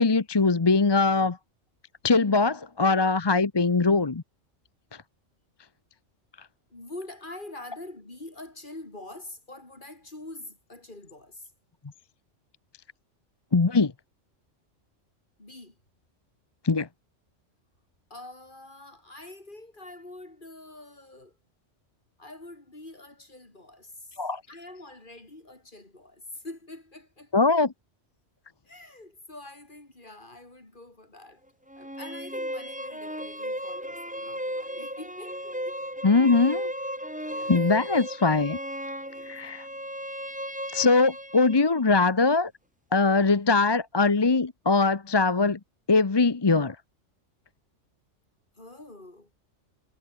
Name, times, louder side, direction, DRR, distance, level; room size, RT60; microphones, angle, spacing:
voice 1, 0.0-1.4 2.0-4.2 13.5-13.9 16.6-16.9 24.2-24.4 27.3-27.7 36.0-36.7 37.5-38.6 39.3-39.7 40.7-42.5 42.9-45.6 45.9-46.8, left 3 dB, 25° left, 0.7 m, -22 dB
voice 2, 6.7-11.5 15.4-15.8 18.1-21.4 22.2-27.3 28.7-31.4 31.8-35.8 37.3-37.6 39.1-39.4 48.6-49.3, left 2 dB, 40° left, 4.2 m, -45 dB
sound 1, 31.7-41.7, equal, 5° right, 2.7 m, -35 dB
omnidirectional pair, 1.3 m